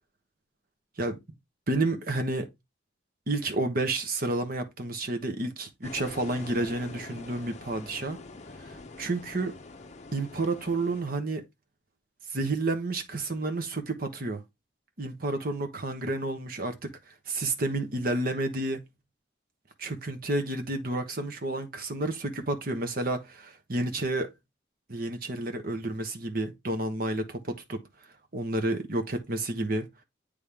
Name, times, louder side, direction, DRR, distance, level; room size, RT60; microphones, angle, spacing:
voice 1, 1.7-2.5 3.3-8.2 8.6-9.5 10.1-11.4 12.3-14.4 15.0-16.9 17.3-18.8 19.8-24.3 24.9-27.8 28.3-29.9, right 2 dB, 50° right, 1.1 m, -30 dB
sound 1, 5.8-11.0, left 3 dB, 40° left, 0.6 m, -45 dB
8.4 x 3.5 x 3.5 m
head